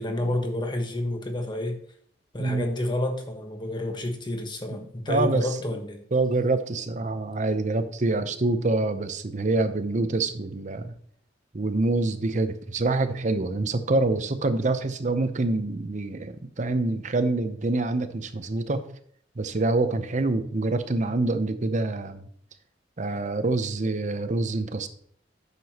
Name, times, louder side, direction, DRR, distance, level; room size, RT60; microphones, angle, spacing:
voice 1, 0.0-1.8 2.3-6.0, left 1 dB, 25° left, 4 dB, 1.3 m, -29 dB
voice 2, 5.1-5.5 6.1-10.9 11.5-18.8 19.4-22.2 23.0-24.9, right 2 dB, 40° right, 10 dB, 0.7 m, -26 dB
9.4 x 6.8 x 2.9 m, 0.63 s
head